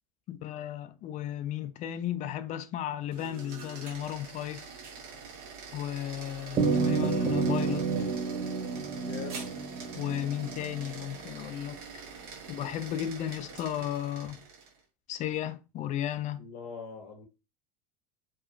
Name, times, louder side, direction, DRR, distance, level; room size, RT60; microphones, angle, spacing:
voice 1, 0.3-4.7 5.7-7.9 9.9-11.8 12.5-14.4 15.1-16.5, left 11 dB, 40° left, 0.4 m, -34 dB
sound 1, 3.0-14.8, right 5 dB, 60° right, 1.2 m, -45 dB
sound 2, 6.6-11.2, right 4 dB, 30° right, 0.6 m, -30 dB
voice 2, 9.0-9.5 16.4-17.3, left 6 dB, 85° left, 0.6 m, -42 dB
2.8 x 2.3 x 2.5 m
supercardioid pair, 100°, 19 cm